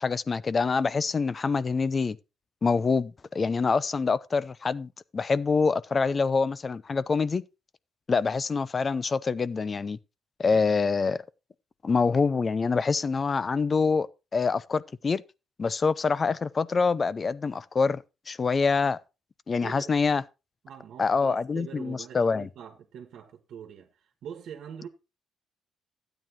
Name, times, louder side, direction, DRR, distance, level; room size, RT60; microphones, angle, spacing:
voice 1, 0.0-2.2 2.6-7.4 8.1-10.0 10.4-11.2 11.8-15.2 15.6-19.0 19.5-20.2 21.0-22.5, left 4 dB, 35° left, 0.6 m, -26 dB
voice 2, 19.6-20.0 20.6-24.9, right 8 dB, 75° right, 1.4 m, -44 dB
12.5 x 9.1 x 2.9 m
cardioid pair, 90°, 0 cm